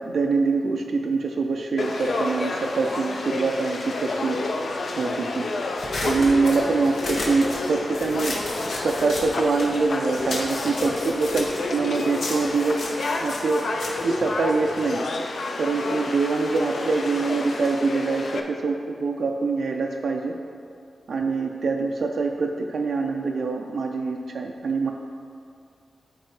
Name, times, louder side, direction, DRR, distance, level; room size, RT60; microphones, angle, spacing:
voice 1, 0.0-4.4 5.0-5.5 6.0-8.4 8.8-12.9 13.2-13.7 14.0-15.0 15.6-20.4 21.1-24.9, right 4 dB, 60° right, 2 dB, 0.4 m, -24 dB
Conversation / Crowd, 1.8-18.4, left 2 dB, 55° left, 0.5 m, -30 dB
sound 1, 5.8-9.8 10.1-14.9, left 2 dB, 75° left, 1.3 m, -34 dB
12.5 x 4.2 x 3.2 m, 2.4 s
wide cardioid pair, 175°, 0 cm